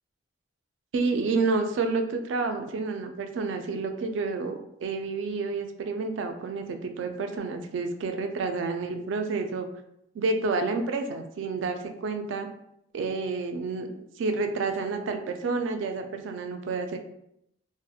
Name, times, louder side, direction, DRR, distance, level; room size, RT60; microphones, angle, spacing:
voice 1, 0.9-9.7 10.1-12.5 12.9-13.9 14.2-17.0, right 3 dB, 75° right, 6 dB, 0.3 m, -29 dB
2.6 x 2.0 x 2.3 m, 0.78 s
head